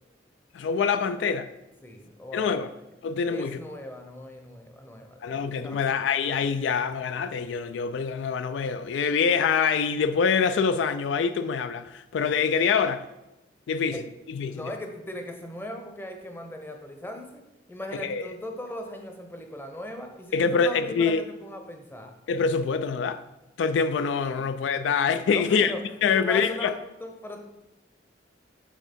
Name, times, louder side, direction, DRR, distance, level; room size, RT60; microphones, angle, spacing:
voice 1, 0.5-1.5 2.3-2.7 3.0-3.6 5.2-13.1 13.7-14.0 14.3-14.7 18.0-18.3 20.3-21.2 22.3-23.2 23.6-25.7 26.0-26.7, left 6 dB, 80° left, 0.3 m, -25 dB
voice 2, 1.8-2.9 3.3-6.2 13.9-14.0 14.5-17.4 17.7-22.1 24.4-24.5 25.3-25.8 26.1-26.7 27.0-27.4, left 1 dB, 10° left, 0.7 m, -39 dB
6.4 x 3.6 x 5.2 m
head